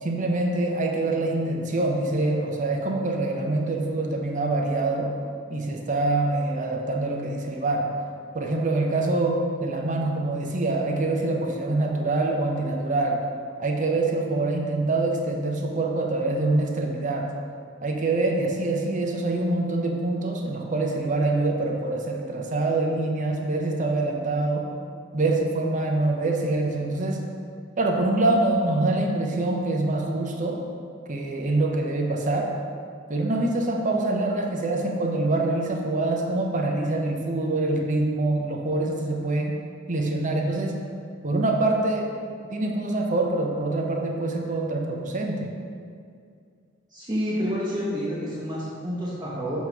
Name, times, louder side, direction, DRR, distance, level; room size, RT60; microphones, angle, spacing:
voice 1, 0.0-5.1 5.5-7.9 8.3-13.2 13.6-17.3 17.8-24.7 25.1-27.2 27.8-30.6 31.1-32.5 33.1-39.5 39.9-40.8 41.2-42.1 42.5-45.5, right 2 dB, 40° right, 1 dB, 0.7 m, -25 dB
voice 2, 46.9-49.7, equal, 20° right, -9 dB, 1.0 m, -29 dB
7.0 x 3.1 x 5.9 m, 2.3 s
head